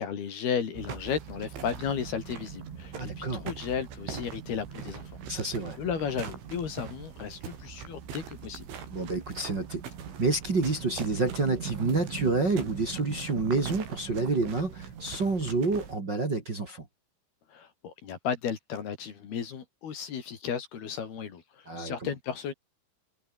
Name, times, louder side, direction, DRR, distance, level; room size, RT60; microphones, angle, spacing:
voice 1, 0.0-5.5 5.8-8.7 17.5-22.5, left 7 dB, 55° left, 4.7 m, -34 dB
sound 1, 0.8-16.0, right 7 dB, 75° right, 6.7 m, -41 dB
voice 2, 2.9-3.4 5.3-5.8 8.9-9.8 10.2-16.8 21.7-22.1, right 3 dB, 30° right, 2.7 m, -28 dB
omnidirectional pair, 5.5 m